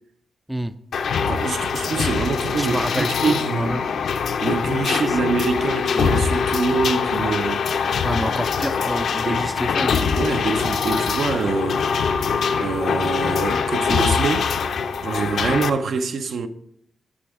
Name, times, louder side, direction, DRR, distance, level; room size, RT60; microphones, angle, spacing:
sound 1, 0.9-15.7, left 6 dB, 70° left, 0.5 m, -23 dB
voice 1, 1.3-3.8 4.4-7.7 9.3-9.5 10.1-11.9 12.6-14.5 15.0-16.5, right 4 dB, 65° right, 0.6 m, -25 dB
voice 2, 2.6-3.9 5.1-5.2 8.0-10.2, right 1 dB, 5° right, 0.3 m, -28 dB
11.5 x 6.1 x 3.5 m
cardioid pair, 105°, 0 cm